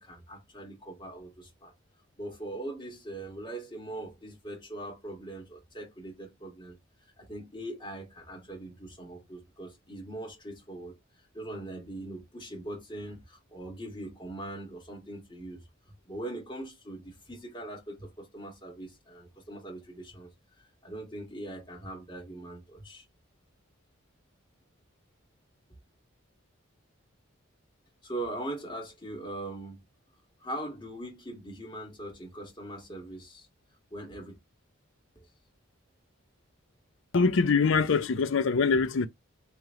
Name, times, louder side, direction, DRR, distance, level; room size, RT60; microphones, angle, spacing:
voice 1, 0.0-1.7 2.2-6.8 7.2-10.9 11.3-15.6 16.1-20.3 20.8-23.0 28.0-29.8 30.4-33.5 33.9-34.4 35.1-35.3, right 1 dB, 20° left, 1.5 m, -41 dB
voice 2, 37.1-39.1, left 4 dB, 65° left, 0.5 m, -24 dB
3.2 x 2.9 x 3.6 m
head